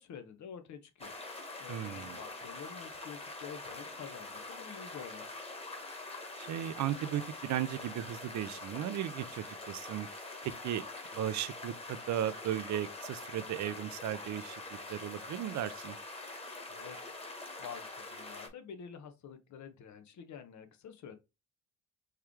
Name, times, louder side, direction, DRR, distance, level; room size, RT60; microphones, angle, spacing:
voice 1, 0.0-5.2 16.7-17.1 17.6-21.2, left 7 dB, 70° left, 1.1 m, -48 dB
sound 1, 1.0-18.5, left 2 dB, 20° left, 1.6 m, -45 dB
voice 2, 1.7-2.2 6.4-10.1 10.6-10.8 11.1-14.6 14.9-16.0, right 11 dB, 65° right, 0.6 m, -36 dB
4.6 x 3.2 x 3.6 m
cardioid pair, 90°, 30 cm